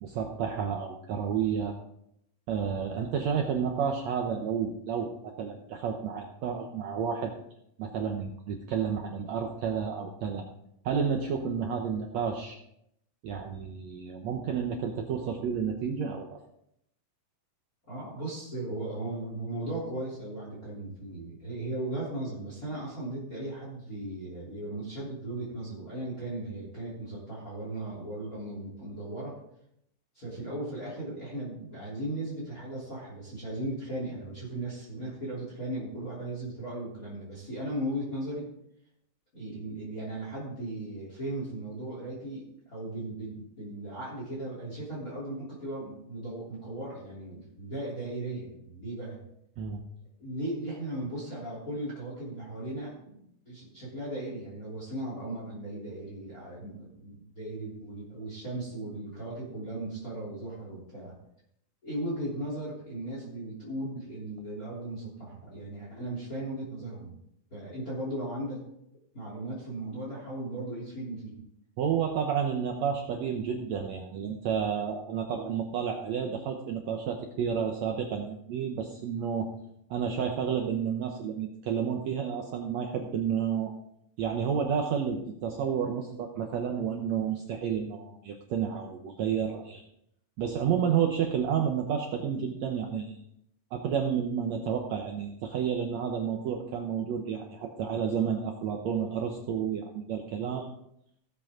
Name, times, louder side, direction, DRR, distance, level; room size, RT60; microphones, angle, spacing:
voice 1, 0.0-1.7 2.5-7.3 7.8-10.5 10.8-12.6 13.2-16.4 49.6-49.8 71.8-79.5 79.9-83.7 84.2-89.8 90.4-93.2 93.7-100.7, right 7 dB, 75° right, 3 dB, 1.6 m, -31 dB
voice 2, 17.9-29.4 30.1-38.5 39.3-49.2 50.2-53.2 53.5-61.1 61.8-67.2 67.5-68.6 69.1-71.4, right 1 dB, 25° left, -5 dB, 3.5 m, -37 dB
17.0 x 7.9 x 3.7 m, 0.75 s
omnidirectional pair, 4.2 m